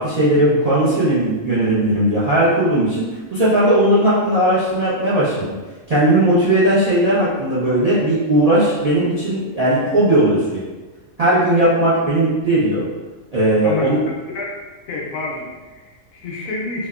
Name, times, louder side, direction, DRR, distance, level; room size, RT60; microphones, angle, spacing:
voice 1, 0.0-5.5 5.9-10.6 11.2-12.9 13.3-14.0, right 1 dB, 50° right, -11 dB, 0.4 m, -17 dB
voice 2, 14.9-16.9, left 3 dB, 80° left, -3 dB, 1.0 m, -28 dB
2.9 x 2.0 x 2.3 m, 1.3 s
omnidirectional pair, 1.4 m